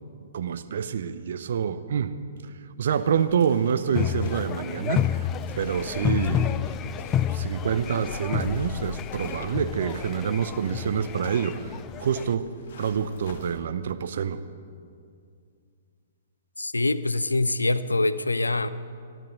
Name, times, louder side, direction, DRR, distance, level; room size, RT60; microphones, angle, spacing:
voice 1, 0.3-2.2 2.8-5.3 5.6-6.7 7.3-12.5 12.8-14.4, right 7 dB, 55° right, 12 dB, 0.7 m, -27 dB
sound 1, 2.9-13.6, left 5 dB, 50° left, 1.9 m, -45 dB
sound 2, 3.9-12.3, left 10 dB, 20° left, 0.3 m, -30 dB
voice 2, 16.6-18.7, left 2 dB, 80° left, 14 dB, 0.6 m, -24 dB
13.5 x 10.5 x 7.7 m, 2.3 s
figure-of-eight pair, 120°, 0 cm